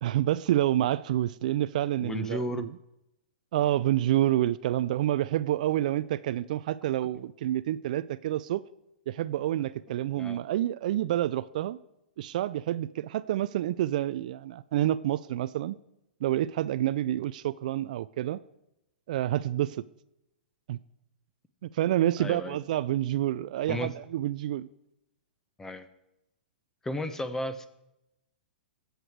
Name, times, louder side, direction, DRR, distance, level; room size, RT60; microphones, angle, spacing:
voice 1, 0.0-2.7 3.5-8.6 9.1-11.8 12.2-15.8 16.2-18.4 19.1-19.8 20.7-20.8 21.6-24.7, right 13 dB, 55° right, 0.4 m, -28 dB
voice 2, 2.0-2.7 10.2-10.4 22.2-22.6 23.7-23.9 25.6-25.9 26.8-27.7, left 1 dB, 10° left, 1.1 m, -34 dB
21.5 x 8.1 x 4.7 m
figure-of-eight pair, 110°, 5 cm